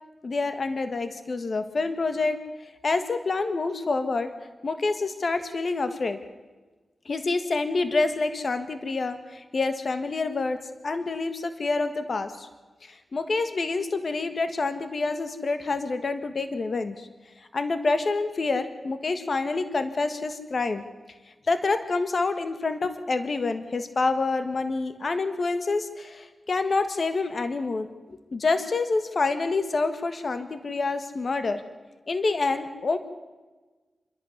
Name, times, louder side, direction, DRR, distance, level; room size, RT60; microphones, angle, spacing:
voice 1, 0.2-4.3 4.6-6.2 7.0-10.6 10.8-12.5 12.8-17.1 17.4-20.8 21.5-27.9 28.3-31.6 32.1-33.0, left 3 dB, 55° left, 10 dB, 1.5 m, -27 dB
28.0 x 11.5 x 9.6 m, 1.3 s
cardioid pair, 60°, 0 cm